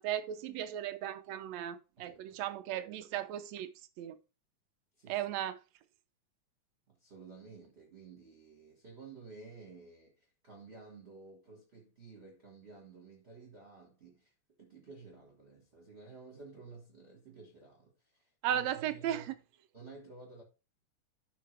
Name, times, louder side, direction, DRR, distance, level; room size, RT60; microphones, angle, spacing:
voice 1, 0.0-3.7 4.0-4.2 5.1-5.6 18.4-19.3, right 11 dB, 75° right, 1.8 m, -36 dB
voice 2, 2.0-2.4 5.0-5.2 6.9-14.3 14.6-19.3 19.7-20.4, right 4 dB, 25° right, 1.6 m, -53 dB
12.5 x 5.7 x 3.4 m
omnidirectional pair, 3.5 m